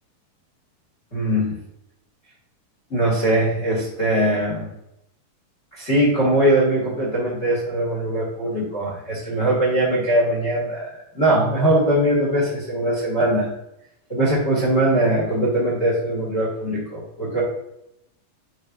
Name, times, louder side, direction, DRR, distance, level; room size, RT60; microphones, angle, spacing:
voice 1, 1.1-1.6 2.9-4.7 5.8-13.5 14.1-17.4, right 1 dB, 30° left, -4 dB, 1.4 m, -21 dB
9.0 x 4.3 x 2.5 m, 0.80 s
omnidirectional pair, 3.9 m